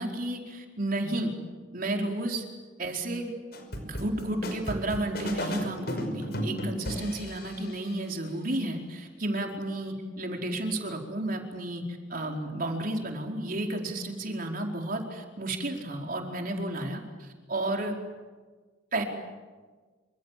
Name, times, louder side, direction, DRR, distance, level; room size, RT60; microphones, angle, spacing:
voice 1, 0.0-1.3 1.7-2.4 2.8-3.3 3.8-11.8 12.1-17.9 18.9-19.0, right 1 dB, 50° right, 2 dB, 4.6 m, -32 dB
sound 1, 3.5-7.8, equal, 60° left, 5.5 m, -34 dB
28.0 x 26.5 x 7.6 m, 1.4 s
head